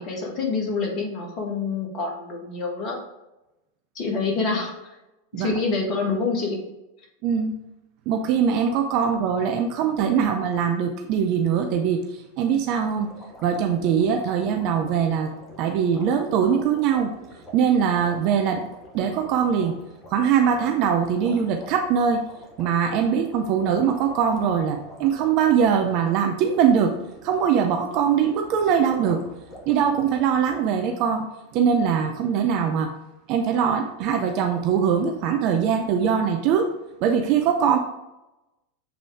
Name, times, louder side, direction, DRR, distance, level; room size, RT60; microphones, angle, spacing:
voice 1, 0.0-3.0 3.9-5.0 5.3-6.6, left 4 dB, 35° left, 0 dB, 1.6 m, -27 dB
voice 2, 7.2-7.6 8.1-13.1 13.4-15.3 15.6-17.1 17.5-18.7 18.9-19.8 20.1-22.2 22.6-27.0 27.2-29.2 29.7-31.3 31.5-32.9 33.3-36.7 37.0-37.8, right 7 dB, 45° right, 5 dB, 0.5 m, -22 dB
sound 1, 12.7-30.6, equal, 20° left, 1.6 m, -46 dB
7.1 x 3.7 x 3.5 m, 0.98 s
figure-of-eight pair, 90°, 0 cm